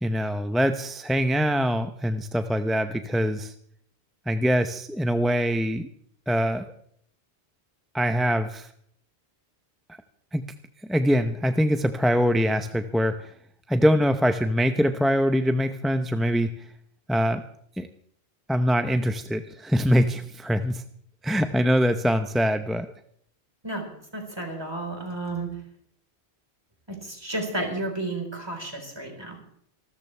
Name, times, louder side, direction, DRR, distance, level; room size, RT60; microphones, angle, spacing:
voice 1, 0.0-3.5 4.3-5.9 6.3-6.7 7.9-8.7 10.3-10.5 10.9-13.2 13.7-16.5 17.1-17.4 17.8-17.9 18.5-20.8 21.2-22.9, equal, ahead, 8 dB, 0.4 m, -23 dB
voice 2, 23.6-25.5 26.9-29.4, right 2 dB, 25° right, 3 dB, 4.1 m, -32 dB
26.0 x 13.5 x 3.3 m, 0.65 s
omnidirectional pair, 1.1 m